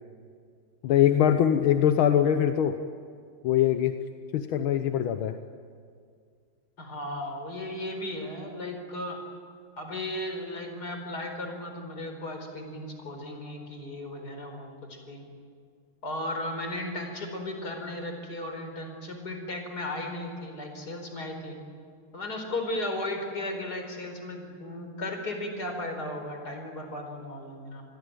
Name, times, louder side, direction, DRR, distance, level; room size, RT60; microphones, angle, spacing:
voice 1, 0.8-2.8 3.4-3.9 4.3-5.4, left 10 dB, 85° left, 8 dB, 1.8 m, -22 dB
voice 2, 6.8-9.2 9.8-15.2 16.0-21.5 22.1-27.8, left 1 dB, 50° left, 4 dB, 5.1 m, -35 dB
28.5 x 21.5 x 9.1 m, 2.2 s
omnidirectional pair, 2.2 m